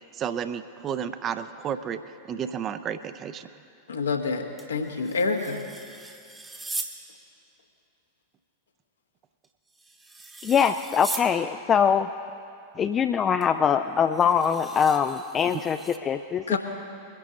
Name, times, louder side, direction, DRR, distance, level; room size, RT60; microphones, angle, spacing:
voice 1, 0.1-2.0 2.3-3.5 15.5-15.6, right 8 dB, 30° right, 11 dB, 0.6 m, -32 dB
voice 2, 3.9-5.6 16.5-16.6, left 4 dB, 70° left, 3 dB, 1.2 m, -27 dB
sound 1, 4.6-7.0 9.4-11.3 13.4-13.5 14.1-16.0, right 3 dB, 10° right, 1.0 m, -39 dB
voice 3, 10.4-12.1 12.8-15.8 16.0-16.6, left 7 dB, 25° left, 9 dB, 0.3 m, -23 dB
21.5 x 11.0 x 4.0 m, 2.5 s
figure-of-eight pair, 90°, 0 cm